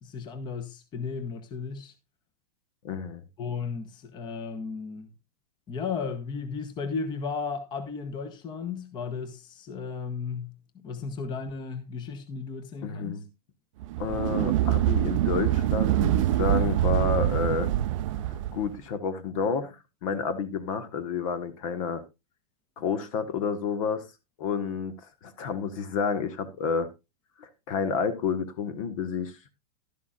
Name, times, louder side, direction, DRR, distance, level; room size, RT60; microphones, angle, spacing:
voice 1, 0.0-1.9 3.4-5.1 5.7-10.5 10.8-13.2, left 5 dB, 20° left, 1.1 m, -34 dB
voice 2, 2.8-3.2 12.8-13.2 14.0-17.7 18.3-22.0 22.8-24.0 24.4-24.9 25.2-26.9 27.4-29.3, left 6 dB, 55° left, 1.5 m, -30 dB
sound 1, 13.8-18.7, right 13 dB, 55° right, 0.4 m, -25 dB
11.5 x 11.0 x 2.5 m
hypercardioid pair, 140°, 20 cm